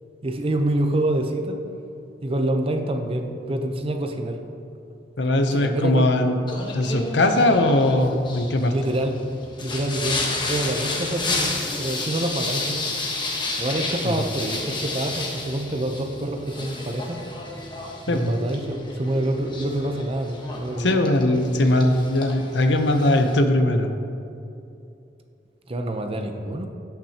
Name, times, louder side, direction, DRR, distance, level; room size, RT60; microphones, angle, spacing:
voice 1, 0.2-1.6 2.2-4.4 5.5-6.1 8.7-9.2 9.6-11.5 11.8-12.9 13.6-17.2 18.1-20.9 25.7-26.7, right 1 dB, 35° right, 5 dB, 0.7 m, -26 dB
voice 2, 5.2-6.4 6.7-8.7 14.0-14.2 18.1-18.3 20.8-23.9, left 1 dB, 75° left, 6 dB, 0.7 m, -20 dB
Singing, 6.5-23.4, left 2 dB, 25° left, 1.2 m, -31 dB
17.0 x 6.0 x 2.9 m, 2.7 s
head